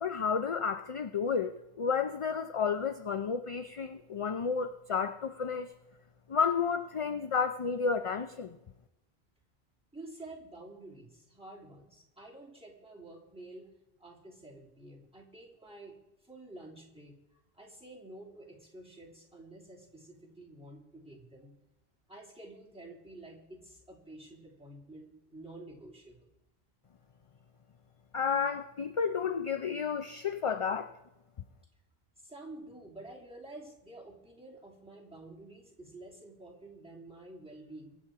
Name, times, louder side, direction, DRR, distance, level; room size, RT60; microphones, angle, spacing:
voice 1, 0.0-1.5 1.8-5.7 6.3-8.6 28.1-30.9, left 6 dB, 40° left, 9 dB, 0.5 m, -31 dB
voice 2, 9.9-13.7 14.0-16.0 16.2-17.2 17.5-21.6 22.1-26.3 32.2-37.9, right 2 dB, 5° right, -3 dB, 2.7 m, -50 dB
23.0 x 7.7 x 4.8 m, 0.92 s
omnidirectional pair, 1.1 m